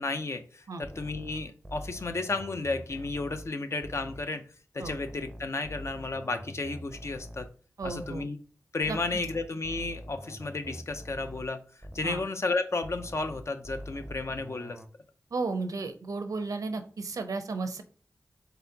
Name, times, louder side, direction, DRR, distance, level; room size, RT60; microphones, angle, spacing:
voice 1, 0.0-4.4 4.7-7.5 7.8-8.4 8.7-11.6 11.9-14.8, left 3 dB, 55° left, 8 dB, 0.6 m, -33 dB
sound 1, 0.8-4.3 4.8-8.3 8.8-12.3 12.8-14.9, equal, 10° right, 0.6 m, -44 dB
voice 2, 7.8-8.2 8.9-9.0 12.0-12.2 15.3-17.8, right 3 dB, 80° right, 8 dB, 0.6 m, -33 dB
3.9 x 3.8 x 2.8 m, 0.39 s
cardioid pair, 50°, 6 cm